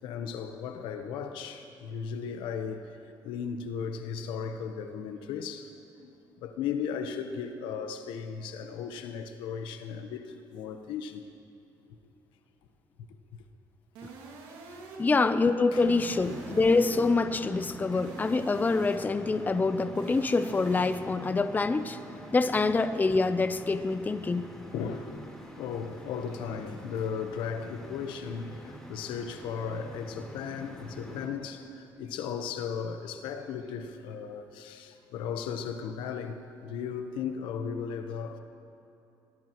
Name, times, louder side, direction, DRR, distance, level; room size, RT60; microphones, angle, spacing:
voice 1, 0.0-2.8 3.2-5.7 6.0-6.1 6.4-11.2 15.0-15.4 15.7-16.1 24.7-25.3 25.6-36.4 36.6-38.4, left 6 dB, 85° left, 1.0 m, -36 dB
sound 1, 14.0-15.2 16.0-17.2 18.0-19.2 20.0-21.2, right 3 dB, 85° right, 2.2 m, -46 dB
voice 2, 15.0-22.0 22.3-24.5, left 3 dB, 20° left, 0.6 m, -26 dB
sound 2, 15.7-31.3, equal, 5° left, 3.7 m, -45 dB
22.0 x 18.5 x 3.1 m
cardioid pair, 85°, 8 cm